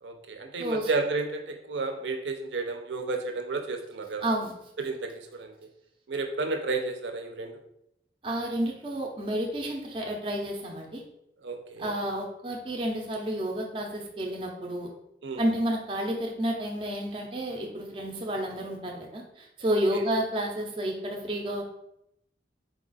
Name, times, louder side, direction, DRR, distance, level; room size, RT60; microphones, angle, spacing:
voice 1, 0.0-4.2 4.8-5.5 6.1-7.6 11.4-11.9 15.2-15.4 19.7-20.0, right 3 dB, 75° right, 5 dB, 0.6 m, -32 dB
voice 2, 4.2-4.5 8.2-11.0 11.8-14.9 15.4-21.6, right 1 dB, 30° right, 0 dB, 0.5 m, -30 dB
4.1 x 2.4 x 3.9 m, 0.79 s
head